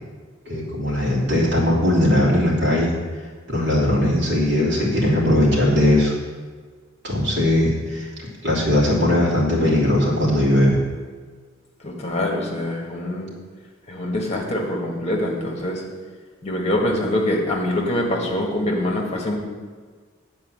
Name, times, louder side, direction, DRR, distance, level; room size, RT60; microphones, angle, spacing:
voice 1, 0.5-2.9 3.5-6.1 7.0-8.1 8.4-10.8, left 1 dB, 60° right, -5 dB, 2.9 m, -19 dB
voice 2, 11.8-13.3 13.9-15.8 16.4-19.4, left 1 dB, 30° left, 0 dB, 1.6 m, -24 dB
9.0 x 4.6 x 7.6 m, 1.5 s
head